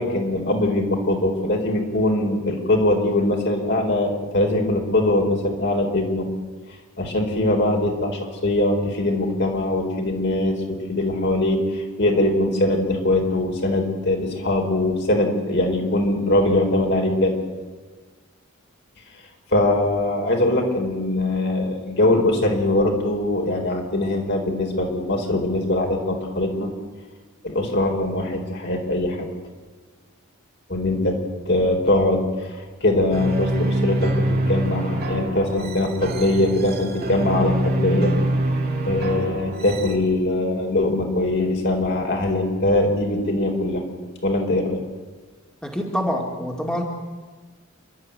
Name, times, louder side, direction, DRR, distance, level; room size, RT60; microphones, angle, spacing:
voice 1, 0.0-6.3 7.0-17.3 19.5-26.7 27.4-29.3 30.7-31.2 31.5-38.1 38.8-43.8 44.2-44.8, left 1 dB, 55° left, 2 dB, 4.3 m, -22 dB
sound 1, 33.1-39.9, right 1 dB, 50° right, 2.2 m, -25 dB
voice 2, 45.6-46.8, equal, 5° left, 0 dB, 2.3 m, -26 dB
28.5 x 12.5 x 9.5 m, 1.4 s
head